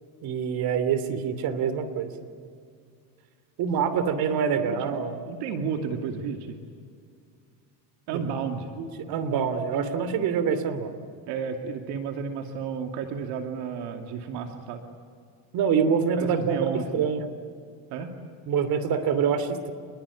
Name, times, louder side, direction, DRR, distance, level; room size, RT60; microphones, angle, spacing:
voice 1, 0.2-2.1 3.6-5.1 8.8-10.9 15.5-17.3 18.5-19.7, right 6 dB, 60° right, 10 dB, 3.0 m, -26 dB
voice 2, 4.6-6.6 8.1-8.7 11.3-14.8 16.2-17.1 17.9-18.1, right 6 dB, 75° right, 3 dB, 2.6 m, -32 dB
29.0 x 21.5 x 8.5 m, 2.2 s
cardioid pair, 130°, 41 cm